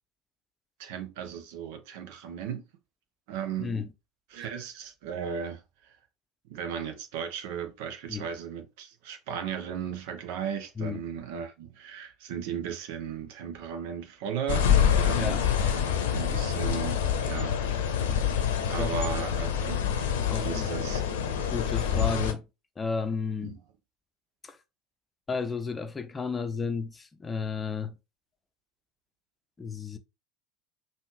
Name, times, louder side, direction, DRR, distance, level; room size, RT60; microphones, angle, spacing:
voice 1, 0.8-2.6 3.3-3.8 4.3-5.6 6.5-17.6 17.9-18.0 18.7-19.8 20.4-21.0 23.4-23.6, right 7 dB, 60° right, 1.0 m, -36 dB
voice 2, 3.6-3.9 8.1-8.3 10.8-11.0 15.1-15.4 18.8-19.1 20.3-20.7 21.5-22.5 22.8-23.6 24.4-24.6 25.3-28.0 29.6-30.0, left 5 dB, 20° left, 0.7 m, -33 dB
sound 1, 14.5-22.3, left 8 dB, 65° left, 0.7 m, -26 dB
5.4 x 2.7 x 3.2 m
figure-of-eight pair, 70°, 0 cm